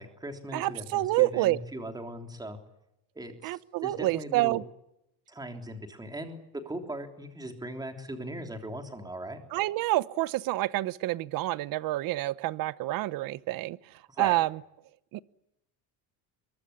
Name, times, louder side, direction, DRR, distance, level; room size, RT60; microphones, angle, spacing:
voice 1, 0.0-2.6 3.1-4.6 5.3-6.4 6.6-9.4 14.2-14.3, right 1 dB, 10° right, 6 dB, 3.3 m, -39 dB
voice 2, 0.5-1.6 3.4-4.6 9.5-14.6 15.1-15.2, right 17 dB, 50° right, 19 dB, 0.9 m, -28 dB
23.5 x 22.5 x 10.0 m, 0.83 s
cardioid pair, 165°, 44 cm